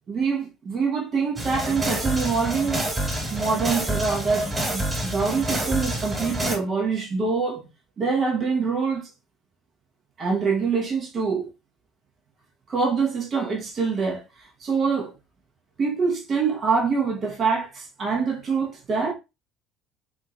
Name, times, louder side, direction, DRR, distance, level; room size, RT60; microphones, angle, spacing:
voice 1, 0.1-2.9 3.3-7.6 8.0-9.1 10.2-11.5 12.7-15.1 15.8-19.1, right 5 dB, 45° right, 1.3 m, -25 dB
sound 1, 1.4-6.6, right 1 dB, 20° right, 2.1 m, -27 dB
3.7 x 2.9 x 3.7 m
hypercardioid pair, 60°, 0 cm